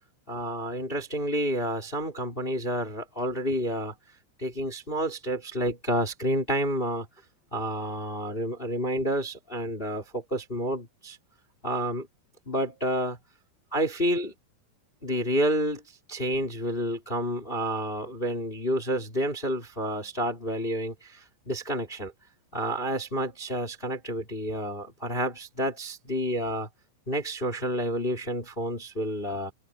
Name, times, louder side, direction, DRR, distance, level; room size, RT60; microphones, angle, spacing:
voice 1, 0.3-3.9 4.4-7.1 7.5-11.2 11.6-12.1 12.4-13.2 13.7-14.3 15.0-22.1 22.5-26.7 27.1-29.5, equal, 10° left, 3.4 m, -29 dB
omnidirectional pair, 5.8 m